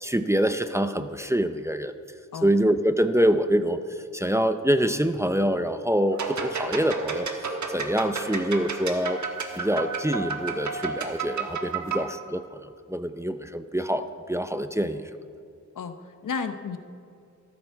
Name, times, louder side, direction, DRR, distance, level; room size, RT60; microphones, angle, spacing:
voice 1, 0.0-1.9 2.4-3.8 4.1-7.3 7.7-9.2 9.6-15.0, equal, 10° right, 9 dB, 0.5 m, -25 dB
sound 1, 6.1-12.1, right 4 dB, 70° right, 1.4 m, -32 dB
voice 2, 15.7-16.8, left 5 dB, 85° left, 9 dB, 0.9 m, -32 dB
14.5 x 13.5 x 4.6 m, 2.4 s
wide cardioid pair, 150°, 31 cm